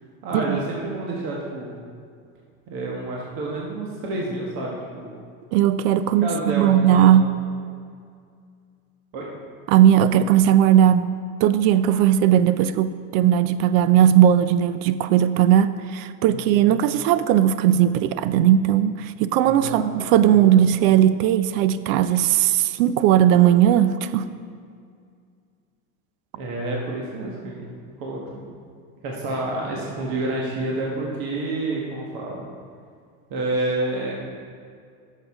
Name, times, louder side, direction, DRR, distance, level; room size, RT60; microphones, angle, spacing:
voice 1, 0.2-1.9 2.7-5.1 6.2-7.1 9.1-9.3 16.3-17.0 19.4-19.9 20.2-20.3 26.3-27.7 28.0-28.4 29.0-32.4 33.3-34.2, right 2 dB, 55° right, -3 dB, 1.5 m, -29 dB
voice 2, 5.5-7.4 9.7-11.1 11.4-24.3, right 10 dB, 75° right, 14 dB, 0.5 m, -18 dB
10.0 x 6.6 x 3.7 m, 2.2 s
supercardioid pair, 125°, 41 cm